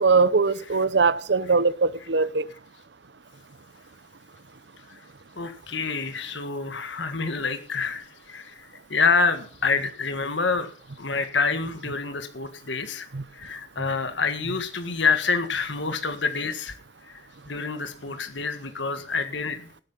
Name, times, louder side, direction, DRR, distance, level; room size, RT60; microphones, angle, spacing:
voice 1, 0.0-2.5 13.1-13.2 13.8-13.9, right 4 dB, 65° right, 0.8 m, -21 dB
voice 2, 5.4-10.7 11.0-13.1 13.3-16.7 17.0-19.7, left 4 dB, 75° left, 1.7 m, -27 dB
17.5 x 8.5 x 5.7 m
head